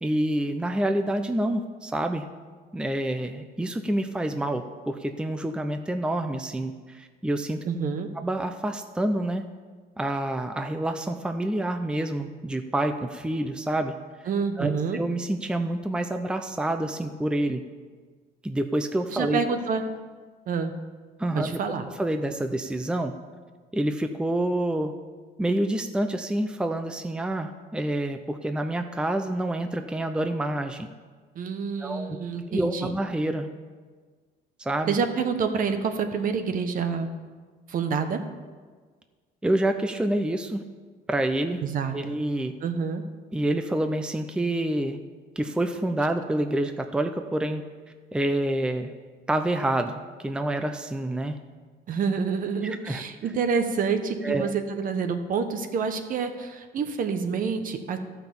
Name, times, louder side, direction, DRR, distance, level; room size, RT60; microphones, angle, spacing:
voice 1, 0.0-2.2 2.7-7.6 8.1-9.4 10.0-13.9 14.6-17.7 18.4-19.4 21.2-21.6 22.0-23.1 23.7-24.9 25.4-30.9 31.8-32.2 32.5-33.5 34.6-35.0 39.4-40.6 41.1-41.6 41.9-42.6 43.3-45.0 45.4-47.6 48.1-48.9 49.3-51.4 52.6-53.0 54.2-54.5, right 1 dB, 5° right, 7 dB, 0.6 m, -27 dB
voice 2, 7.7-8.1 14.3-15.0 19.1-19.8 20.5-20.7 21.3-21.9 31.3-32.9 34.9-37.1 37.7-38.2 41.6-41.9 42.6-43.0 51.9-58.0, right 5 dB, 55° right, 7 dB, 1.2 m, -27 dB
13.0 x 5.9 x 7.1 m, 1.5 s
cardioid pair, 110°, 17 cm